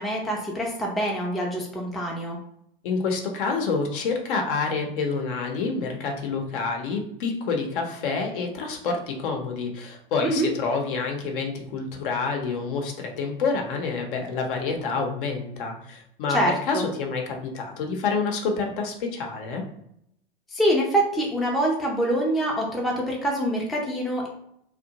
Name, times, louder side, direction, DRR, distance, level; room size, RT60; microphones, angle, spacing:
voice 1, 0.0-2.4 10.2-10.5 16.3-16.9 20.5-24.3, right 1 dB, ahead, -2 dB, 0.4 m, -25 dB
voice 2, 2.8-19.6, left 4 dB, 60° left, 3 dB, 0.7 m, -28 dB
2.6 x 2.1 x 2.8 m, 0.73 s
hypercardioid pair, 95°, 29 cm